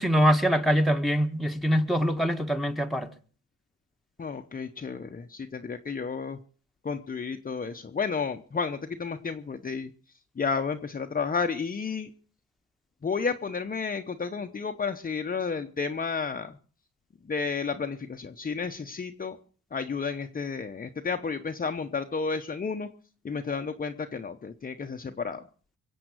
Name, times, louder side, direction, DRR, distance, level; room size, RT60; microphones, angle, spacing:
voice 1, 0.0-3.1, equal, ahead, 1.5 m, -24 dB
voice 2, 4.2-6.4 6.8-9.9 10.4-12.1 13.0-16.6 17.3-19.4 19.7-22.9 23.2-25.5, left 5 dB, 30° left, 1.0 m, -32 dB
23.0 x 8.0 x 6.3 m
cardioid pair, 90°, 30 cm